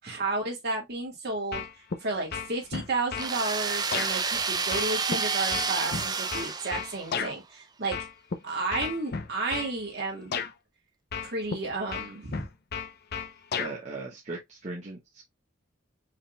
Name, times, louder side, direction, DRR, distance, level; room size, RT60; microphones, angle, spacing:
voice 1, 0.0-1.7 2.0-8.0 8.4-10.4 11.2-12.4, right 3 dB, 55° right, 2.1 m, -32 dB
sound 1, 1.5-2.0 2.3-3.3 3.9-4.1 4.7-7.3 7.9-8.4 8.7-9.7 10.3-10.5 11.1-11.6 11.9-13.7, left 6 dB, 55° left, 0.7 m, -33 dB
sound 2, 3.2-7.3, right 5 dB, 20° right, 0.4 m, -30 dB
voice 2, 13.6-15.2, right 3 dB, 35° right, 1.2 m, -38 dB
4.9 x 3.8 x 2.2 m
head